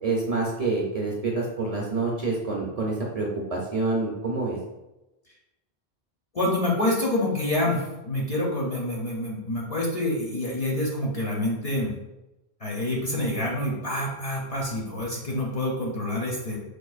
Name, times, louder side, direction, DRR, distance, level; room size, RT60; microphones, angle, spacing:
voice 1, 0.0-4.6, right 3 dB, 45° right, -3 dB, 0.6 m, -27 dB
voice 2, 6.3-11.9 12.6-16.6, left 1 dB, 45° left, -3 dB, 0.6 m, -27 dB
4.4 x 2.4 x 2.4 m, 1.0 s
omnidirectional pair, 1.1 m